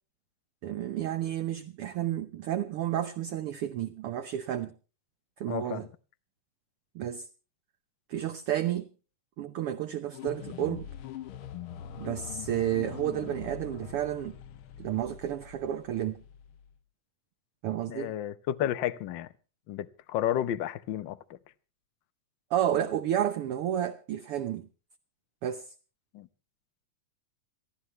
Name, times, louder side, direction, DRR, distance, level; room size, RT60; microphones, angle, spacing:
voice 1, 0.6-4.7 5.4-5.9 6.9-7.3 8.1-8.9 9.4-10.9 12.0-14.4 14.8-16.2 17.6-18.1 22.5-24.7 25.4-25.7, right 11 dB, 65° right, 1.5 m, -31 dB
voice 2, 5.5-5.8 17.9-19.3 19.7-21.4 26.1-26.3, left 11 dB, 90° left, 1.0 m, -32 dB
sound 1, 10.1-16.8, left 10 dB, 70° left, 1.3 m, -43 dB
28.0 x 11.5 x 3.1 m
omnidirectional pair, 3.4 m